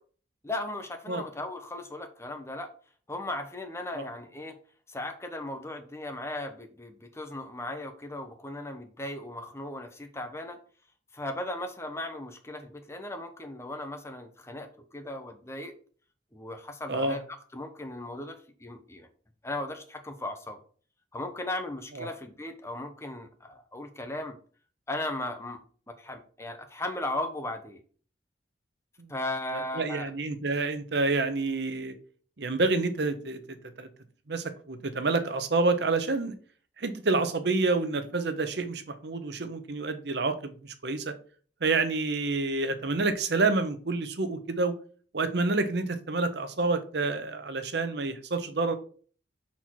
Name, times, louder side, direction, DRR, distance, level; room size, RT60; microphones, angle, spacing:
voice 1, 0.4-2.7 3.1-4.6 4.9-10.6 11.1-15.7 16.3-17.2 17.5-19.1 19.4-20.6 21.1-24.4 24.9-25.6 26.0-27.8 29.1-30.1, left 1 dB, 15° left, 6 dB, 0.8 m, -37 dB
voice 2, 29.8-31.9 32.4-33.4 33.8-33.9 34.3-36.4 36.8-41.1 41.6-44.8 45.1-48.7, right 3 dB, 65° right, 9 dB, 0.8 m, -28 dB
5.7 x 4.3 x 4.5 m, 0.43 s
head